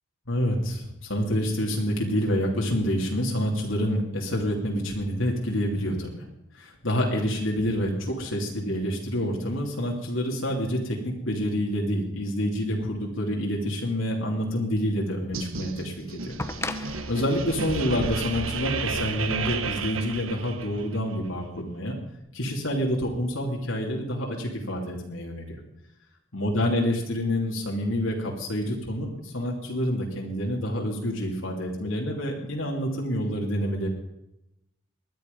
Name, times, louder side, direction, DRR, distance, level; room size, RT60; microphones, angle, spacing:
voice 1, 0.3-6.3 6.5-16.4 16.7-22.0 22.3-25.6 26.3-33.9, equal, 75° left, -1 dB, 2.9 m, -28 dB
sound 1, 14.9-15.0 16.4-19.2 20.4-20.5, left 2 dB, 15° left, 0.8 m, -37 dB
sound 2, 15.3-21.0, right 4 dB, 85° right, 1.3 m, -32 dB
19.5 x 12.0 x 5.4 m, 0.87 s
head